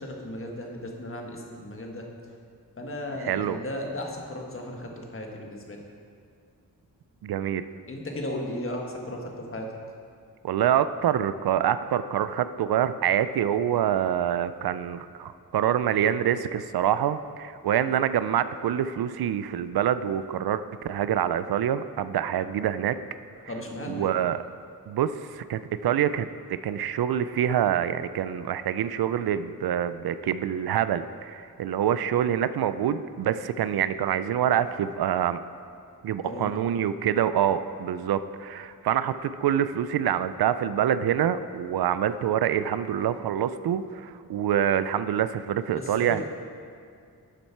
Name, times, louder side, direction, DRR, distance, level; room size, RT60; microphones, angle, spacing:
voice 1, 0.0-2.1 2.8-5.8 7.9-9.7 23.5-24.2 36.2-36.6 45.7-46.2, left 1 dB, 35° left, 1 dB, 1.4 m, -35 dB
voice 2, 3.2-3.6 7.2-7.7 10.4-23.0 23.9-24.4 24.9-35.4 36.0-46.2, right 10 dB, 80° right, 13 dB, 0.5 m, -26 dB
12.0 x 7.3 x 4.5 m, 2.3 s
wide cardioid pair, 125°, 37 cm